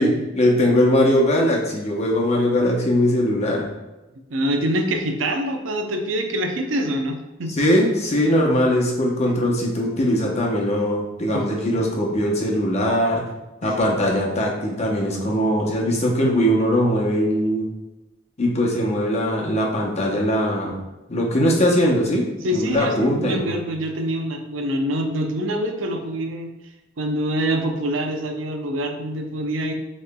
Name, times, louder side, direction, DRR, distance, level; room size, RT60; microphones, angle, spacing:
voice 1, 0.0-3.7 7.6-13.2 13.6-17.7 18.4-20.8 21.1-22.3 22.5-23.6, equal, 35° left, -1 dB, 0.8 m, -20 dB
voice 2, 4.3-7.5 11.3-11.5 13.6-13.7 22.4-26.5 27.0-29.7, right 1 dB, 80° right, 4 dB, 0.6 m, -25 dB
6.7 x 3.1 x 2.2 m, 1.0 s
head